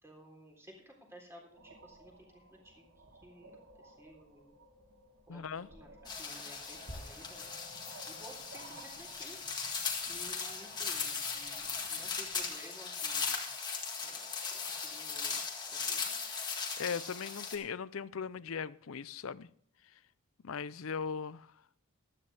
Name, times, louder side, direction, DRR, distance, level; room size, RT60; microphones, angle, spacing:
voice 1, 0.0-4.5 5.3-7.5 8.0-9.4 10.0-13.5 14.0-15.4 15.7-16.2, equal, 10° right, 3.6 m, -55 dB
sound 1, 1.5-12.5, right 1 dB, 65° right, 2.1 m, -55 dB
voice 2, 5.3-5.7 16.8-19.5 20.4-21.5, left 6 dB, 75° left, 0.5 m, -38 dB
sound 2, 6.1-17.6, left 5 dB, 20° left, 1.8 m, -38 dB
15.0 x 13.0 x 3.4 m
head